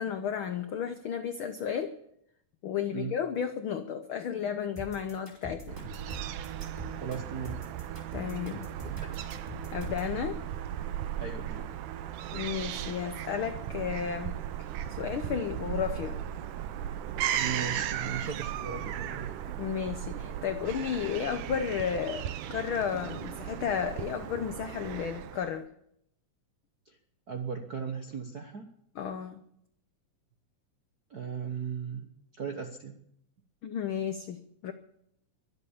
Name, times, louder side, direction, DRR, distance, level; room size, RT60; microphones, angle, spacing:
voice 1, 0.0-1.9 2.6-5.8 8.1-8.7 9.7-10.4 12.3-14.4 14.9-16.2 19.6-25.7 29.0-29.4 33.6-34.7, left 8 dB, 80° left, 9 dB, 1.1 m, -33 dB
sound 1, 4.8-10.1, equal, 5° right, 4.6 m, -43 dB
Fowl / Gull seagull, 5.7-25.6, right 10 dB, 90° right, 2.4 m, -36 dB
voice 2, 7.0-7.7 8.8-9.2 11.1-11.7 17.4-19.3 26.8-27.0 27.3-28.7 31.1-33.0, right 6 dB, 65° right, 5 dB, 0.9 m, -37 dB
23.0 x 8.1 x 7.2 m, 0.74 s
omnidirectional pair, 3.5 m